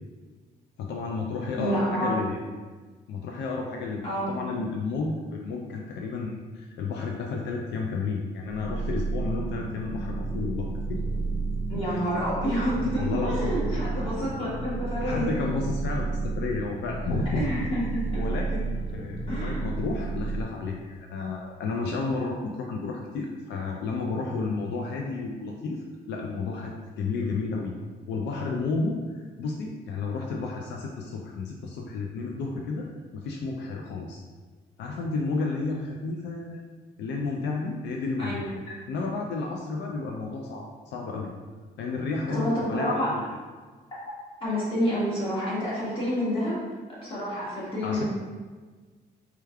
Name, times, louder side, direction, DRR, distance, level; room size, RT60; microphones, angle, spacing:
voice 1, 0.8-2.4 3.1-11.0 11.8-12.0 13.0-13.5 15.0-17.4 18.2-27.7 28.1-32.9 33.1-34.2 34.8-36.6 37.0-38.5 38.9-41.3 41.8-43.2 47.8-48.0, left 3 dB, 80° left, 0 dB, 0.4 m, -32 dB
voice 2, 1.5-2.2 4.0-4.3 11.7-15.3 17.3-18.2 19.3-19.6 38.2-38.5 42.3-43.1 44.4-46.6 47.0-48.0, equal, 30° left, -8 dB, 1.5 m, -28 dB
sound 1, 8.5-20.4, right 3 dB, 45° right, 1.0 m, -31 dB
4.5 x 3.4 x 2.3 m, 1.4 s
cardioid pair, 165°, 18 cm